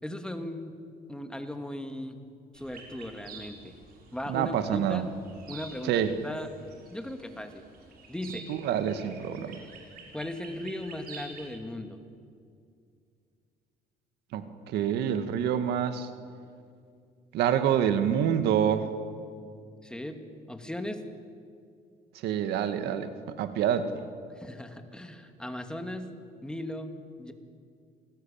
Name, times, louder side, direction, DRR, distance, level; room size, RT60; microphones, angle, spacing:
voice 1, 0.0-0.7 1.1-2.2 2.5-3.8 4.1-5.1 5.5-6.5 6.9-7.6 8.1-8.5 10.1-12.0 19.8-20.2 20.5-21.0 24.4-26.1 26.4-26.9 27.2-27.3, left 1 dB, 5° left, 6 dB, 2.4 m, -37 dB
sound 1, 2.5-11.5, right 4 dB, 60° right, 6.5 m, -49 dB
voice 2, 4.3-5.0 5.8-6.2 8.5-9.6 14.3-16.1 17.3-18.9 22.2-23.9, right 9 dB, 80° right, 9 dB, 1.9 m, -27 dB
28.5 x 20.0 x 8.8 m, 2.3 s
cardioid pair, 110°, 17 cm